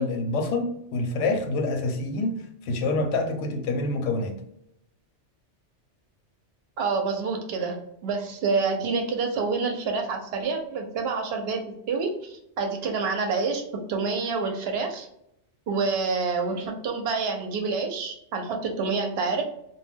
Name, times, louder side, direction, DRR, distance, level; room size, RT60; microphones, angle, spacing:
voice 1, 0.0-2.4 2.6-4.4, left 2 dB, 90° left, 5 dB, 0.9 m, -26 dB
voice 2, 6.8-11.6 11.9-13.6 13.9-15.1 15.7-19.4, right 4 dB, 65° right, 3 dB, 0.7 m, -27 dB
2.2 x 2.1 x 3.3 m, 0.78 s
omnidirectional pair, 1.2 m